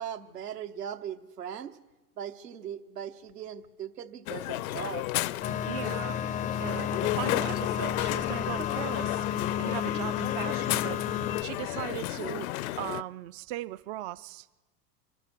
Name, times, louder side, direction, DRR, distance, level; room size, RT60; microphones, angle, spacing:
voice 1, 0.0-1.8 2.2-5.1, right 9 dB, 75° right, 7 dB, 1.1 m, -39 dB
Crowd, 4.3-13.0, left 16 dB, 60° left, 0.6 m, -33 dB
sound 1, 5.4-11.4, left 9 dB, 15° left, 0.4 m, -32 dB
voice 2, 5.7-6.2 6.6-9.3 9.6-11.0 11.4-12.5 12.8-14.5, right 15 dB, 45° right, 15 dB, 0.4 m, -38 dB
25.5 x 12.0 x 4.6 m, 1.2 s
figure-of-eight pair, 80°, 48 cm